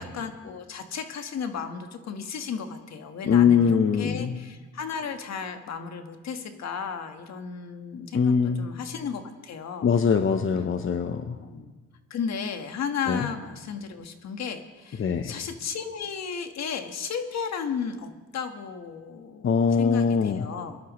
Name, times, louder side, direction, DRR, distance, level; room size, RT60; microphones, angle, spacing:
voice 1, 0.0-3.7 4.0-10.0 11.4-11.7 12.1-19.5 19.8-20.8, left 6 dB, 60° left, 6 dB, 1.5 m, -34 dB
voice 2, 3.2-4.5 8.1-8.7 9.8-11.4 13.1-13.3 15.0-15.4 19.4-20.5, left 6 dB, 45° left, 7 dB, 0.8 m, -22 dB
22.0 x 12.0 x 3.1 m, 1.3 s
cardioid pair, 90°, 30 cm